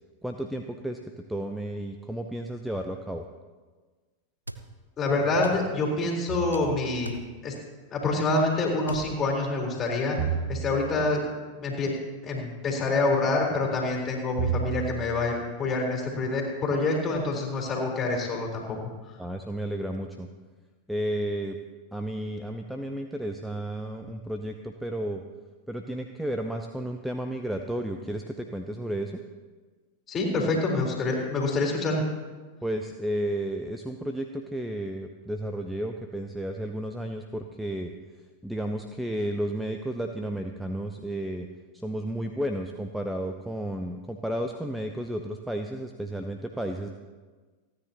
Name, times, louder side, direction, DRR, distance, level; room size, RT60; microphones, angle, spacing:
voice 1, 0.2-1.0 1.3-3.2 19.2-20.3 20.9-21.6 21.9-25.2 25.7-29.2 32.6-37.9 38.4-41.5 41.7-46.9, right 1 dB, 5° right, 5 dB, 0.7 m, -32 dB
sound 1, 4.5-4.6 5.4-5.7 6.5-6.7 7.1-7.3 8.8-9.1, right 2 dB, 85° right, 0.7 m, -36 dB
voice 2, 5.0-7.2 7.4-7.5 7.9-10.2 10.5-11.2 11.6-11.9 12.2-18.8 30.1-32.0, left 3 dB, 25° left, -1 dB, 3.9 m, -26 dB
sound 2, 6.3-7.1 10.2-11.2 14.4-15.3, right 7 dB, 55° right, 3.0 m, -32 dB
29.0 x 9.9 x 2.9 m, 1.4 s
figure-of-eight pair, 90°, 0 cm